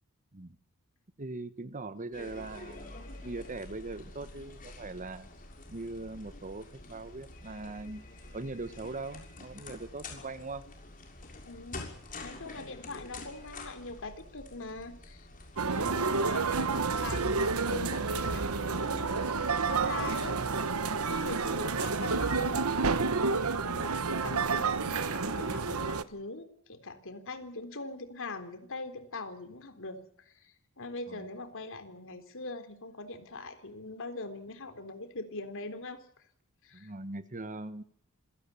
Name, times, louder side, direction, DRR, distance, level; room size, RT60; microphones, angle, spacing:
voice 1, 1.2-5.3 5.7-8.0 8.3-10.6 31.1-31.3 36.7-37.8, right 2 dB, 35° right, 13 dB, 1.2 m, -41 dB
sound 1, 2.1-21.6, left 2 dB, 40° left, 6.5 m, -48 dB
voice 2, 11.5-11.9 12.2-15.3 15.6-20.4 21.0-22.9 23.6-36.0 36.6-36.9, left 3 dB, 60° left, 8 dB, 3.6 m, -42 dB
sound 2, 15.6-26.0, right 4 dB, 75° right, 1.2 m, -30 dB
27.0 x 17.5 x 7.1 m, 0.65 s
head